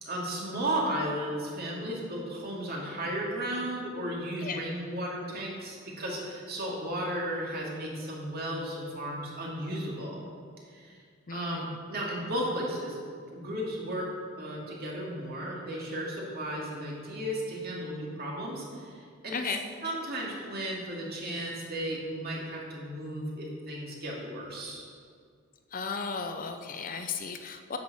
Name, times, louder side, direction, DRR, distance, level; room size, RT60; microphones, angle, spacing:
voice 1, 0.0-10.2 10.7-11.0 11.3-13.0 13.3-14.1 14.4-19.4 19.8-24.8, right 1 dB, 50° right, -3 dB, 2.4 m, -34 dB
voice 2, 11.3-11.8 19.3-19.6 25.7-27.8, left 5 dB, 40° left, 6 dB, 0.6 m, -35 dB
9.4 x 6.8 x 6.9 m, 2.1 s
head